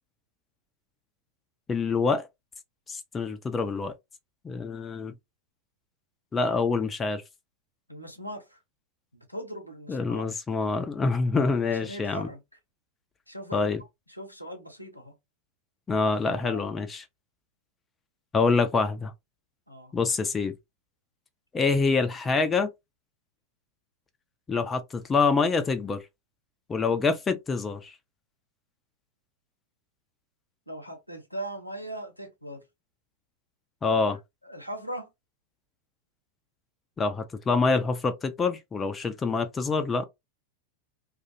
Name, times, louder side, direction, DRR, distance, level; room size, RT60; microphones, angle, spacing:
voice 1, 1.7-2.3 2.9-3.9 4.4-5.1 6.3-7.2 9.9-12.3 13.5-13.8 15.9-17.0 18.3-19.1 19.9-20.6 21.5-22.7 24.5-26.0 26.7-27.9 33.8-34.2 37.0-40.1, left 4 dB, 15° left, 0.4 m, -26 dB
voice 2, 7.9-8.6 9.1-10.3 11.6-12.4 13.3-13.7 14.1-15.1 16.3-16.7 19.7-19.9 30.7-32.6 33.9-34.2 34.4-35.1, right 1 dB, 90° left, 0.8 m, -39 dB
2.4 x 2.3 x 2.8 m
figure-of-eight pair, 90°, 0 cm